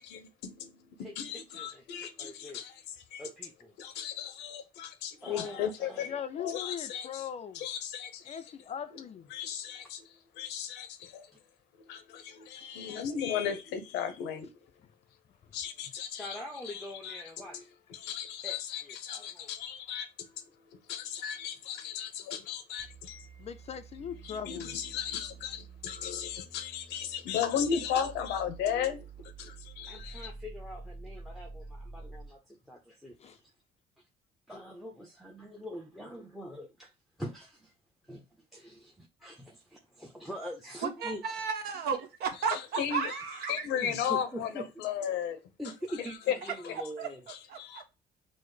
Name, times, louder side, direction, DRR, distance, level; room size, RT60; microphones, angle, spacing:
voice 1, 0.0-2.7 3.1-3.2 3.8-7.3 7.5-8.4 8.9-9.0 9.3-10.0 10.3-11.3 11.8-14.5 15.5-16.4 16.6-17.2 17.5-17.6 17.9-23.4 24.2-30.3 42.5-43.2 43.5-45.4 46.3-46.4 46.6-46.8 47.3-47.8, left 8 dB, 85° left, 0.7 m, -36 dB
voice 2, 1.0-2.6 3.2-3.8 5.2-6.1 16.2-17.7 18.4-18.6 18.8-19.5 29.9-33.4 34.5-36.9 37.2-37.7 38.1-38.2 38.5-41.2 43.1-43.2 43.8-44.7 45.6-47.2, equal, ahead, 0.6 m, -44 dB
voice 3, 6.1-7.6 8.3-9.3 23.4-24.8 33.2-33.4, left 8 dB, 40° left, 0.4 m, -40 dB
sound 1, 22.8-32.4, right 4 dB, 45° right, 1.4 m, -48 dB
voice 4, 41.0-43.5 47.0-47.1 47.5-47.8, right 6 dB, 70° right, 1.0 m, -33 dB
6.1 x 2.0 x 3.2 m
cardioid pair, 110°, 17 cm